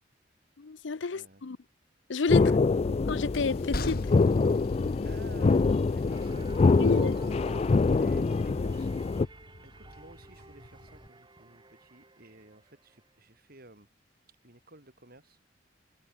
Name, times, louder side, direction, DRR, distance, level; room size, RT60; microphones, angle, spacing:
voice 1, 0.6-1.6 2.1-2.4 3.1-4.1 6.8-7.2, left 4 dB, 85° left, 0.6 m, -30 dB
voice 2, 1.1-1.4 2.4-2.6 5.0-6.5 7.9-9.1 9.6-15.6, right 2 dB, 55° right, 7.7 m, -54 dB
sound 1, 2.3-9.3, left 4 dB, 35° left, 0.4 m, -25 dB
Train, 2.5-11.1, left 1 dB, 55° left, 2.2 m, -43 dB
sound 2, 6.1-13.0, right 3 dB, 25° right, 2.5 m, -52 dB
head